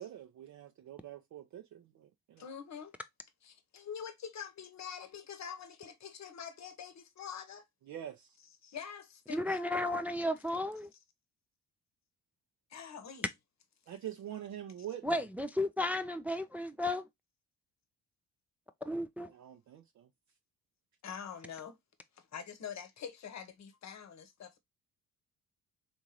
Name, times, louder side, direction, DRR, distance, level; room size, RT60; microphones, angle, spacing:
voice 1, 0.0-2.4 7.9-8.3 13.9-15.2 19.3-20.1, right 11 dB, 50° right, 0.6 m, -45 dB
voice 2, 2.4-2.9 3.4-7.6 8.6-9.6 12.7-13.3 21.0-21.8 22.1-24.6, left 7 dB, 45° left, 1.0 m, -45 dB
voice 3, 9.3-10.9 15.0-17.1 18.8-19.3, left 1 dB, 5° right, 0.4 m, -33 dB
3.6 x 2.6 x 2.9 m
hypercardioid pair, 50°, 38 cm